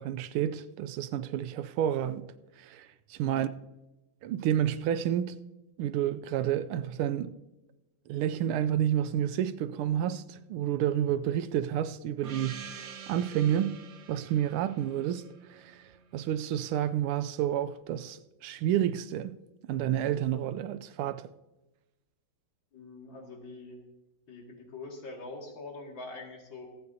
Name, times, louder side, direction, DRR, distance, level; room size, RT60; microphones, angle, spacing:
voice 1, 0.0-2.3 2.6-3.5 4.2-5.3 5.8-7.4 8.1-13.8 14.1-19.4 19.7-21.3, right 10 dB, 85° right, 1.5 m, -30 dB
voice 2, 3.2-3.5 22.7-23.8 24.3-26.7, left 3 dB, 60° left, 2.9 m, -44 dB
Gong, 12.2-16.6, right 7 dB, 60° right, 1.4 m, -47 dB
26.0 x 9.1 x 2.8 m
omnidirectional pair, 2.4 m